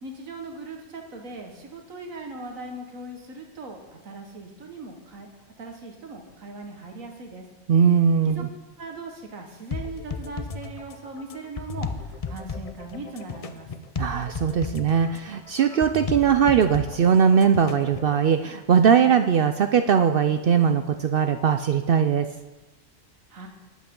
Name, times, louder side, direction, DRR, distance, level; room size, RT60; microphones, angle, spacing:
voice 1, 0.0-7.5 8.2-8.4 8.8-13.7 23.3-23.5, right 3 dB, 85° right, 2 dB, 1.8 m, -39 dB
voice 2, 7.7-8.5 14.0-22.3, right 7 dB, 65° right, 8 dB, 0.6 m, -20 dB
sound 1, 9.7-18.2, left 5 dB, 40° left, 0.5 m, -35 dB
19.5 x 8.3 x 3.8 m, 1.1 s
omnidirectional pair, 1.4 m